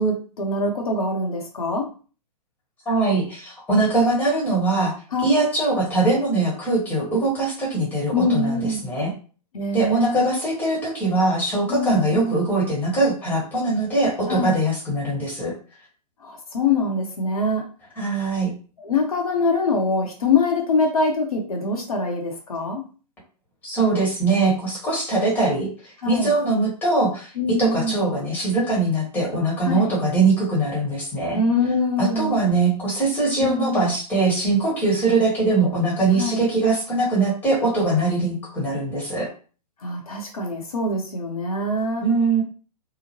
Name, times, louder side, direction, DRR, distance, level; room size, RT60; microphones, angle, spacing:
voice 1, 0.0-1.9 5.1-5.2 8.1-8.8 9.5-10.3 11.7-12.3 14.3-14.6 16.2-17.6 18.8-22.8 26.0-26.3 27.4-28.0 29.6-29.9 31.3-32.3 33.4-33.9 36.2-36.4 39.8-42.1, left 2 dB, 60° left, 2 dB, 0.7 m, -24 dB
voice 2, 2.9-4.9 5.2-9.1 9.7-15.5 18.0-18.5 23.6-25.7 26.1-31.4 32.0-39.3 42.0-42.4, right 2 dB, 10° left, -4 dB, 1.1 m, -22 dB
2.8 x 2.1 x 2.9 m, 0.38 s
figure-of-eight pair, 115°, 21 cm